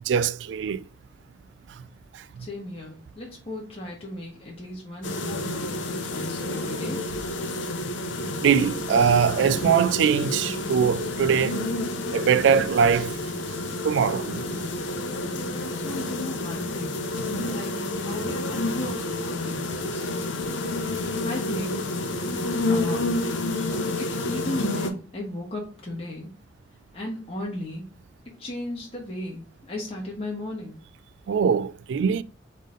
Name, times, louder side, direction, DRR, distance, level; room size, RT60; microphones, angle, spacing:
voice 1, 0.1-0.8 2.1-2.2 8.4-11.6 12.1-13.2 13.8-14.5 31.3-32.2, right 7 dB, 70° right, 0.3 m, -22 dB
voice 2, 2.4-7.0 15.7-20.4 20.8-21.9 22.7-23.3 24.0-26.3 26.9-27.8 28.2-30.8, left 1 dB, 30° left, 1.3 m, -36 dB
sound 1, 5.0-24.9, left 2 dB, 80° left, 0.7 m, -29 dB
3.7 x 3.6 x 3.7 m
head